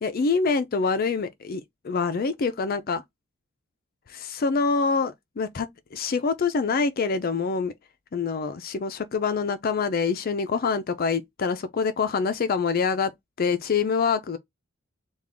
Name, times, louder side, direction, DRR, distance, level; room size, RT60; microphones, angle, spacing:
voice 1, 0.0-3.0 4.1-7.7 8.1-13.1 13.4-14.4, left 5 dB, 45° left, 0.4 m, -25 dB
3.4 x 2.3 x 3.5 m
head